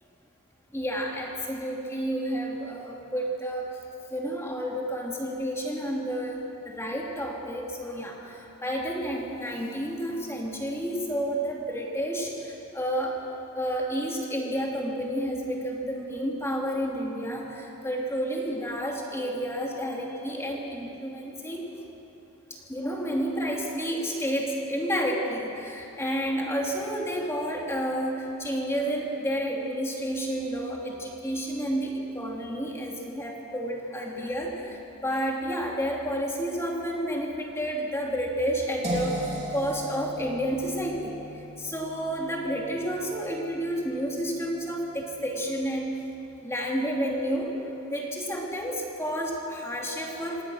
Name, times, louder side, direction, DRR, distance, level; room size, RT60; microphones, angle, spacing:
voice 1, 0.7-3.8 4.1-13.2 13.5-21.6 22.5-41.2 41.6-46.0 46.4-47.6 47.9-50.4, equal, 10° left, -1 dB, 2.8 m, -30 dB
sound 1, 38.8-44.7, equal, 30° right, 3.7 m, -37 dB
27.0 x 18.5 x 6.4 m, 3.0 s
head